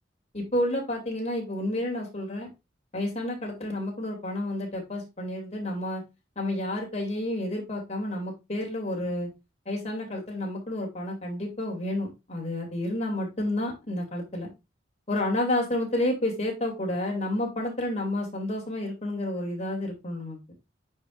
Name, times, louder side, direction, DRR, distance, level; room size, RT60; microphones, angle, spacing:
voice 1, 0.3-2.5 2.9-6.0 6.4-9.3 9.7-14.5 15.1-20.4, left 1 dB, 35° left, -1 dB, 2.6 m, -30 dB
9.3 x 4.8 x 2.5 m, 0.24 s
head